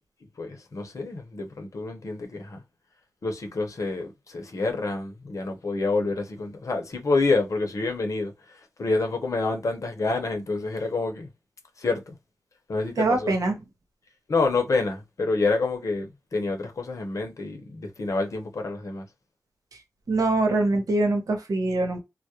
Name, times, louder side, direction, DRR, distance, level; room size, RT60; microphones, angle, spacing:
voice 1, 0.4-2.6 3.2-11.3 11.8-12.2 12.7-13.3 14.3-19.1, left 3 dB, 60° left, 0.7 m, -28 dB
voice 2, 13.0-13.5 20.1-22.0, right 2 dB, 80° right, 0.8 m, -23 dB
2.3 x 2.0 x 2.8 m
cardioid pair, 60°, 6 cm